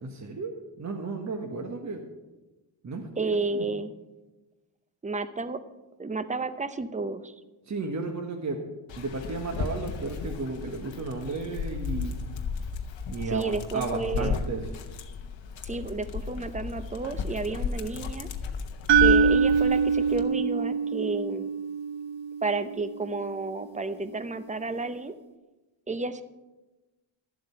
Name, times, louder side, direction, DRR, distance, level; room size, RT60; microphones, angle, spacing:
voice 1, 0.0-2.1 2.8-3.1 3.5-3.7 7.7-8.6 8.9-12.2 13.1-14.6, right 3 dB, 35° right, 3 dB, 1.3 m, -33 dB
voice 2, 3.2-3.9 5.0-5.6 6.0-7.3 13.3-14.4 15.6-18.3 19.0-21.5 22.4-25.1 25.9-26.2, right 3 dB, 15° right, 12 dB, 0.7 m, -31 dB
Dog, 8.9-20.2, left 5 dB, 65° left, 1.1 m, -34 dB
sound 1, 18.9-23.0, right 6 dB, 70° right, 1.0 m, -24 dB
11.5 x 7.7 x 5.7 m, 1.1 s
cardioid pair, 75°, 48 cm